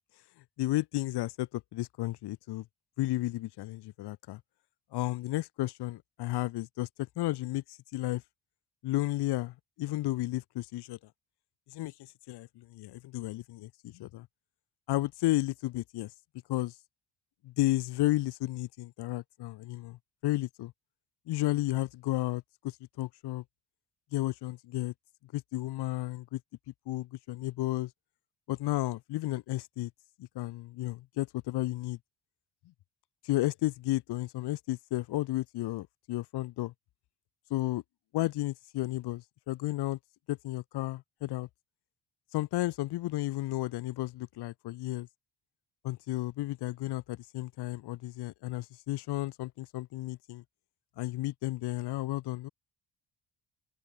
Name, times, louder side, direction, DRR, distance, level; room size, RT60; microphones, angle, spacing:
voice 1, 0.6-2.7 3.0-4.4 4.9-6.9 7.2-8.2 8.8-11.0 11.7-11.9 12.3-14.3 14.9-16.1 16.5-16.7 17.4-20.0 20.2-20.7 21.3-23.4 24.1-24.9 25.3-26.4 26.9-27.9 28.5-29.9 30.2-32.0 33.2-36.7 37.5-37.8 38.1-40.0 40.3-41.5 42.3-45.1 45.8-50.4 51.0-52.5, left 17 dB, 70° left, 0.6 m, -33 dB
open air
cardioid pair, 95°, 42 cm